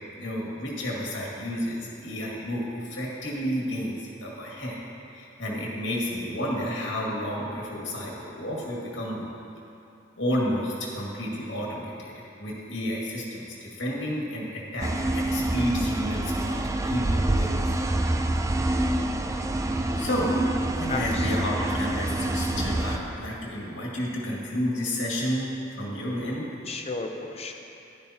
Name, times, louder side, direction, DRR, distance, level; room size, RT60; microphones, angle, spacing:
voice 1, 0.2-4.8 5.1-9.3 10.2-12.1 12.4-17.5 19.9-20.4 20.8-25.5 25.8-26.5, equal, 80° left, -4 dB, 2.1 m, -31 dB
sound 1, 14.8-23.0, right 1 dB, 15° right, 0.4 m, -26 dB
voice 2, 20.9-21.6 26.7-27.5, left 3 dB, 35° left, 3 dB, 0.7 m, -34 dB
11.0 x 10.5 x 2.9 m, 2.7 s
head